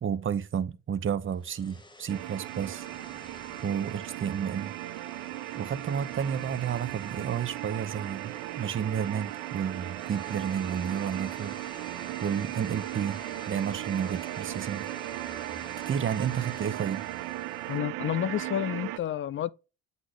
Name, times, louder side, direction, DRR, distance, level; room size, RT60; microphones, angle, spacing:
voice 1, 0.0-2.8 3.6-4.7 5.5-11.6 12.2-13.2 13.5-14.9 15.9-17.0, right 8 dB, 30° right, 0.6 m, -31 dB
sound 1, 1.2-17.8, left 2 dB, 10° left, 1.0 m, -50 dB
sound 2, 2.1-19.0, right 17 dB, 85° right, 0.5 m, -37 dB
voice 2, 17.7-19.5, left 11 dB, 30° left, 0.4 m, -30 dB
8.0 x 4.1 x 3.1 m
supercardioid pair, 90°, 44 cm